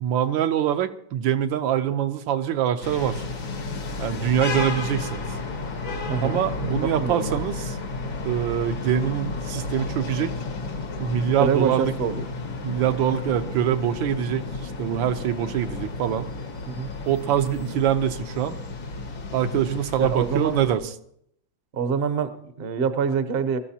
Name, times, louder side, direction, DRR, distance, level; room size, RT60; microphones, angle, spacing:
voice 1, 0.0-3.2 4.0-5.2 6.2-7.8 8.2-10.3 11.0-11.9 12.6-16.3 17.1-18.6 19.3-20.9, right 10 dB, 85° right, 9 dB, 1.5 m, -24 dB
sound 1, 2.8-20.8, left 3 dB, 85° left, 2.4 m, -32 dB
voice 2, 6.1-6.4 6.9-7.4 11.4-12.2 16.7-16.9 20.0-20.6 21.7-23.6, right 6 dB, 50° right, 11 dB, 0.7 m, -25 dB
22.0 x 13.5 x 2.8 m, 0.70 s
omnidirectional pair, 2.1 m